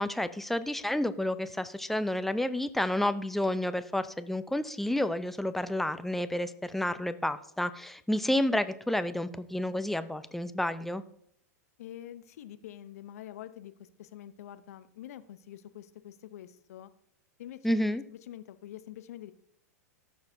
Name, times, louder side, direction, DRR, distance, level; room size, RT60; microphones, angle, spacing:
voice 1, 0.0-11.0 17.6-18.0, left 1 dB, ahead, 12 dB, 0.5 m, -30 dB
voice 2, 11.8-16.9 17.4-19.3, left 11 dB, 65° left, 12 dB, 0.7 m, -46 dB
14.5 x 6.3 x 2.7 m, 0.71 s
figure-of-eight pair, 95°, 9 cm